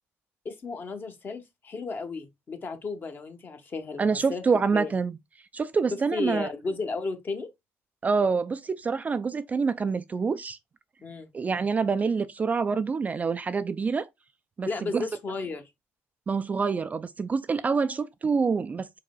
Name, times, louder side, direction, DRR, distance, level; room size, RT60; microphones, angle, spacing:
voice 1, 0.4-4.4 4.7-4.9 6.1-7.5 11.0-11.3 14.7-15.6, left 4 dB, 35° left, 1.1 m, -34 dB
voice 2, 4.0-5.2 5.5-6.5 8.0-10.6 11.3-14.1 14.6-15.1 16.3-19.0, right 5 dB, 30° right, 0.3 m, -26 dB
4.8 x 4.0 x 2.2 m
cardioid pair, 100°, 6 cm